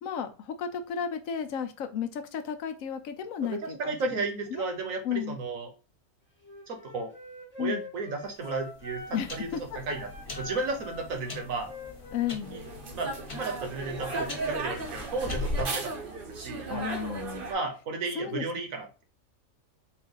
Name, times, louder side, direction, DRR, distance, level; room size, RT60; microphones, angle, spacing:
voice 1, 0.0-4.2 4.5-4.6 5.0-5.4 7.6-7.8 9.1-9.6 12.1-12.6 16.7-17.4 18.1-18.7, left 8 dB, 80° left, 8 dB, 1.0 m, -33 dB
voice 2, 3.4-5.7 6.7-7.1 7.6-10.1 10.4-11.7 12.5-12.6 12.9-15.9 16.3-17.2 17.5-19.0, right 3 dB, 75° right, 5 dB, 1.4 m, -34 dB
Wind instrument woodwind instrument, 6.4-9.5 9.9-13.3, left 2 dB, 10° left, 1.2 m, -45 dB
sound 1, 8.2-15.6, left 3 dB, 40° left, 1.3 m, -40 dB
sound 2, 12.4-17.5, right 3 dB, 45° right, 0.9 m, -36 dB
4.4 x 2.5 x 3.8 m, 0.34 s
omnidirectional pair, 1.4 m